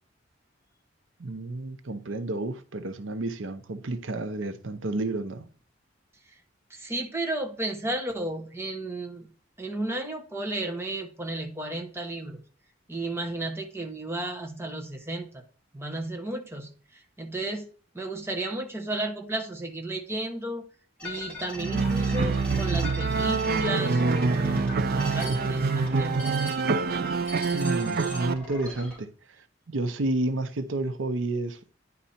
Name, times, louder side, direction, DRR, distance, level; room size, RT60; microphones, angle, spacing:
voice 1, 1.2-5.5 27.5-31.6, right 2 dB, 80° right, 0.7 m, -31 dB
voice 2, 6.7-9.3 9.6-12.4 12.9-15.4 15.7-17.7 17.9-20.7 21.0-26.3, right 2 dB, 15° right, 1.1 m, -33 dB
sound 1, 21.0-29.0, left 1 dB, 5° left, 3.5 m, -40 dB
sound 2, 21.6-28.3, right 4 dB, 50° right, 0.4 m, -26 dB
10.5 x 4.2 x 4.3 m
head